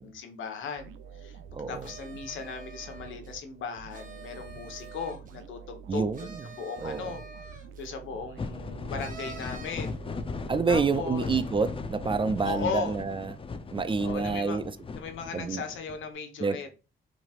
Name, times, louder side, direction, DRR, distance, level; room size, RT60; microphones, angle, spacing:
voice 1, 0.0-1.4 1.7-7.2 7.5-10.1 10.7-11.3 12.4-12.9 14.0-14.6 14.9-16.7, left 5 dB, 80° left, 1.2 m, -37 dB
sound 1, 0.8-13.0, right 7 dB, 85° right, 0.6 m, -48 dB
voice 2, 1.5-1.9 5.9-6.4 6.8-7.1 10.5-13.3 13.7-14.8 15.3-15.6 16.4-16.6, right 4 dB, 25° right, 0.4 m, -28 dB
sound 2, 1.8-3.3 3.9-5.4 6.1-7.8 9.0-10.0, right 3 dB, 40° right, 1.4 m, -47 dB
sound 3, 8.4-16.0, left 4 dB, 25° left, 0.6 m, -38 dB
6.0 x 3.3 x 2.5 m
cardioid pair, 90°, 20 cm